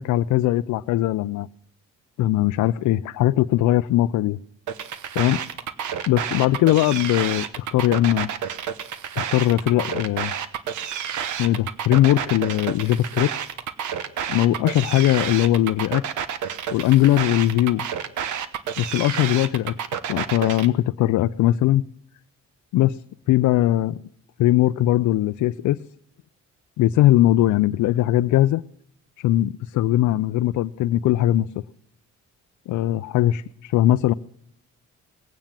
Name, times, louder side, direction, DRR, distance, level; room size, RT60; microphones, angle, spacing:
voice 1, 0.0-1.5 2.2-4.4 5.2-5.4 6.1-8.3 9.2-10.3 11.4-13.3 14.3-16.0 16.7-17.8 18.8-19.7 20.1-21.8 22.7-23.0 23.3-24.0 24.4-25.8 26.8-28.6 29.2-31.5 32.7-34.1, left 14 dB, 75° left, 11 dB, 0.5 m, -20 dB
sound 1, 4.7-20.7, right 8 dB, 75° right, 1.1 m, -30 dB
19.5 x 9.0 x 7.4 m, 0.71 s
cardioid pair, 90°, 30 cm